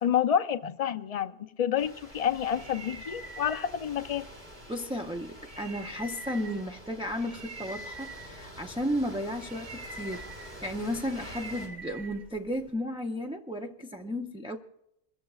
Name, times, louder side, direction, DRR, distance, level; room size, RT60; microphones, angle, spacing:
voice 1, 0.0-4.3, left 9 dB, 45° left, 0.5 m, -29 dB
sound 1, 1.8-11.7, equal, 60° right, 7.5 m, -47 dB
sound 2, 2.1-12.7, right 2 dB, 45° right, 1.1 m, -46 dB
voice 2, 4.7-14.6, equal, 5° right, 0.4 m, -34 dB
29.0 x 14.5 x 2.4 m
omnidirectional pair, 1.2 m